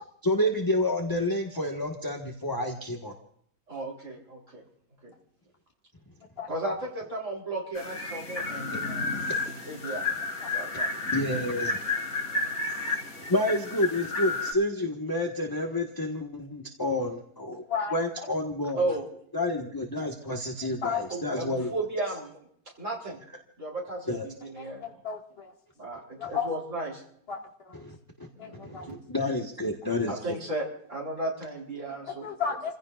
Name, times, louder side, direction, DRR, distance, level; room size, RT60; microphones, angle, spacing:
voice 1, 0.2-3.1 11.1-11.8 13.3-17.6 17.9-18.8 19.3-21.7 24.1-24.2 27.7-28.3 28.6-30.1, left 1 dB, 15° left, 1 dB, 1.5 m, -29 dB
voice 2, 3.7-4.6 5.0-5.1 6.5-9.2 9.7-10.0 10.5-11.1 12.3-12.5 18.7-19.1 21.1-22.4 22.8-23.2 23.6-25.0 25.8-27.0 28.3-29.0 30.1-32.3, right 2 dB, 55° right, -1 dB, 4.2 m, -34 dB
sound 1, 7.7-14.5, left 3 dB, 70° left, 3.4 m, -31 dB
voice 3, 24.6-25.5 26.2-26.5 27.3-27.4 27.6-27.8 28.4-28.9 32.0-32.8, left 6 dB, 40° left, -1 dB, 2.2 m, -33 dB
29.5 x 16.0 x 2.5 m, 0.69 s
omnidirectional pair, 1.5 m